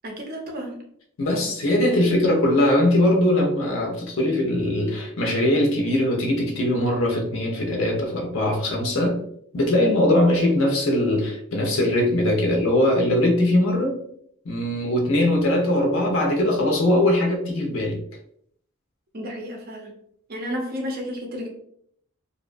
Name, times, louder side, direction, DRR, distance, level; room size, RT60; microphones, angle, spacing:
voice 1, 0.0-0.8 19.1-19.9 20.3-21.5, equal, 45° right, 0.6 m, -32 dB
voice 2, 1.2-9.2 9.5-14.0 14.5-18.0, left 1 dB, 65° left, 0.5 m, -21 dB
2.6 x 2.1 x 2.4 m
head